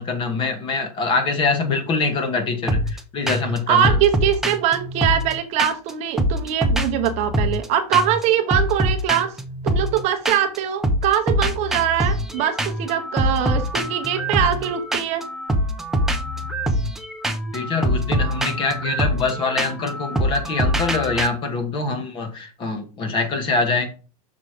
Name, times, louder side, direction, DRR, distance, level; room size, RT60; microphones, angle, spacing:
voice 1, 0.0-4.0 17.5-23.9, left 4 dB, 25° left, 1.1 m, -24 dB
sound 1, 2.7-3.0 3.3-3.6 3.8-5.9 6.2-7.7 7.9-8.2 8.5-10.6 10.8-21.3, equal, ahead, 0.5 m, -24 dB
voice 2, 3.7-9.4 9.6-15.2, right 9 dB, 30° right, 0.8 m, -22 dB
6.0 x 4.5 x 4.9 m
supercardioid pair, 155°, 21 cm